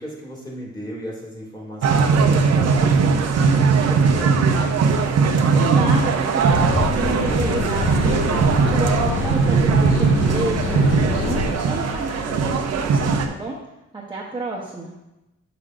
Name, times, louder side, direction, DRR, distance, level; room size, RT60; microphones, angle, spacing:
voice 1, 0.0-4.7, right 1 dB, 15° left, -3 dB, 2.2 m, -35 dB
sound 1, 1.8-13.3, right 5 dB, 55° right, 0.7 m, -19 dB
voice 2, 5.5-13.6 13.9-14.9, right 2 dB, 15° right, -4 dB, 0.9 m, -30 dB
sound 2, 6.4-11.5, left 2 dB, 90° left, 2.2 m, -24 dB
6.8 x 6.4 x 2.5 m, 0.93 s
cardioid pair, 90°, 30 cm